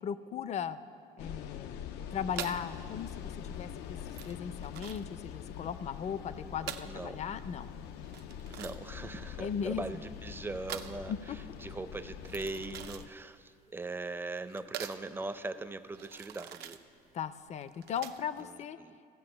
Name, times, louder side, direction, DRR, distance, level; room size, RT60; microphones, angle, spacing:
voice 1, 0.0-0.8 1.2-1.8 2.1-4.0 4.2-7.7 9.4-10.0 11.1-11.4 17.1-18.8, left 7 dB, 40° left, 14 dB, 0.5 m, -37 dB
sound 1, 1.2-13.1, left 9 dB, 90° left, 0.5 m, -44 dB
sound 2, 2.3-18.4, right 10 dB, 75° right, 0.6 m, -46 dB
voice 2, 6.8-7.2 8.5-11.1 11.6-16.8 18.4-18.9, right 3 dB, 15° right, 11 dB, 0.5 m, -40 dB
15.0 x 5.6 x 7.7 m, 2.3 s
cardioid pair, 110°, 17 cm